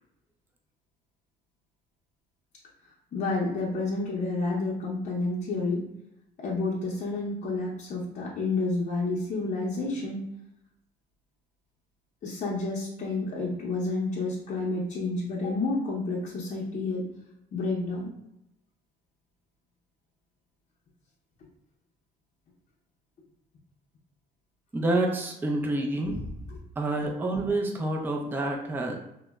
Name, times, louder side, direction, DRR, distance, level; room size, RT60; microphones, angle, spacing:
voice 1, 3.1-5.9 6.4-10.2 12.2-17.1 17.5-18.1 26.5-26.6, left 3 dB, 45° left, -4 dB, 0.6 m, -30 dB
voice 2, 24.7-26.3 26.8-29.0, right 2 dB, 10° right, 1 dB, 0.4 m, -28 dB
2.8 x 2.1 x 2.2 m, 0.82 s
cardioid pair, 110°, 17 cm